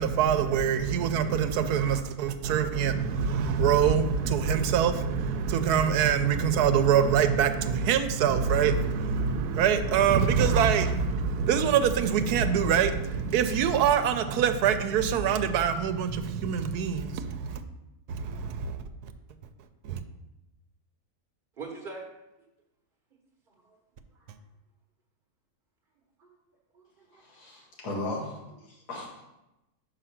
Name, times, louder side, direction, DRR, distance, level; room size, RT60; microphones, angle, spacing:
voice 1, 0.0-17.6 18.1-19.1 19.8-20.0, right 7 dB, 90° right, 9 dB, 1.1 m, -25 dB
voice 2, 21.6-22.1 23.1-23.2 23.5-23.8 24.1-24.3 26.2-26.4 26.7-27.2, right 4 dB, 40° right, -1 dB, 0.9 m, -43 dB
voice 3, 27.1-29.2, left 2 dB, 90° left, -3 dB, 2.2 m, -37 dB
5.6 x 4.9 x 5.7 m, 0.94 s
omnidirectional pair, 1.6 m